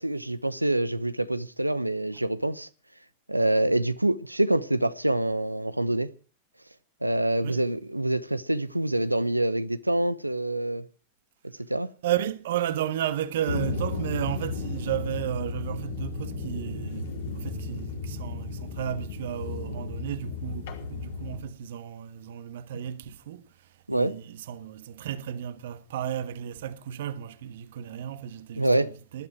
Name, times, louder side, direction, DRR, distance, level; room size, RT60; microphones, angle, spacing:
voice 1, 0.0-2.7 3.3-6.1 7.0-10.9 11.7-11.9 23.9-24.1 28.6-28.9, right 1 dB, 85° right, 1.0 m, -26 dB
voice 2, 12.0-29.3, right 11 dB, 55° right, 1.4 m, -33 dB
sound 1, 13.5-21.4, left 3 dB, 60° left, 4.8 m, -34 dB
19.5 x 12.5 x 4.8 m
figure-of-eight pair, 90°, 0 cm